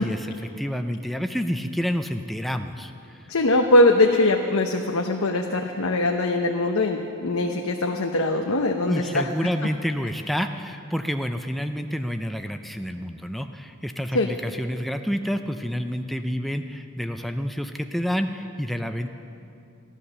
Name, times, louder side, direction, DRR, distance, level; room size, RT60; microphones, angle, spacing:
voice 1, 0.0-3.3 8.9-19.1, equal, ahead, 6 dB, 0.4 m, -29 dB
voice 2, 3.3-9.3 14.1-14.3, left 2 dB, 90° left, 2 dB, 0.8 m, -21 dB
15.5 x 11.0 x 6.6 m, 2.7 s
head